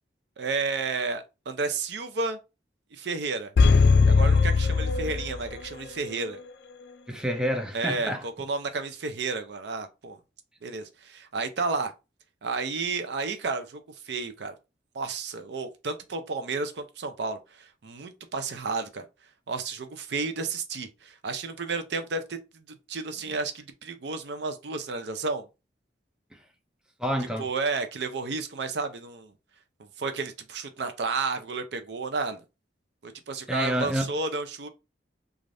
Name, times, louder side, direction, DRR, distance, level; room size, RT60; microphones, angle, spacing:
voice 1, 0.4-2.4 2.9-3.5 4.1-6.4 7.7-10.2 10.6-11.9 12.4-14.5 14.9-19.0 19.5-25.4 27.4-29.3 30.0-32.4 33.0-34.7, right 4 dB, 70° right, 0.5 m, -32 dB
sound 1, 3.6-5.7 6.1-6.2, left 4 dB, 65° left, 0.4 m, -20 dB
voice 2, 7.1-8.2 27.0-27.5 33.5-34.1, equal, 5° right, 0.4 m, -28 dB
3.2 x 2.4 x 2.5 m
head